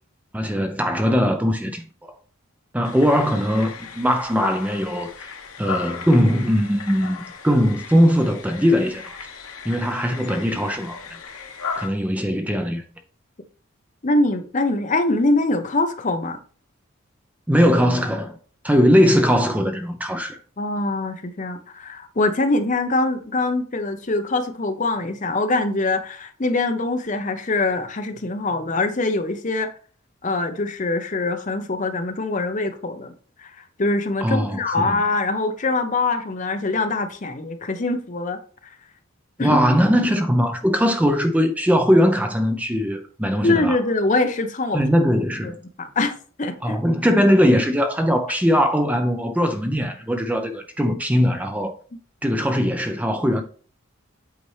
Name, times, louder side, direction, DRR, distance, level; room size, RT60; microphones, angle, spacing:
voice 1, 0.3-2.1 2.7-5.3 5.6-9.2 9.6-11.0 11.8-12.8 17.5-18.4 18.6-20.4 34.2-35.0 39.4-43.8 44.7-45.5 46.6-51.8 52.2-53.4, equal, 5° right, 0.5 m, -20 dB
sound 1, 2.8-11.9, left 5 dB, 80° left, 1.0 m, -36 dB
voice 2, 14.0-16.4 20.6-29.7 30.2-33.1 33.4-38.4 39.4-39.6 43.4-44.8 45.4-46.8, left 2 dB, 35° left, 0.7 m, -23 dB
8.2 x 4.3 x 3.2 m
head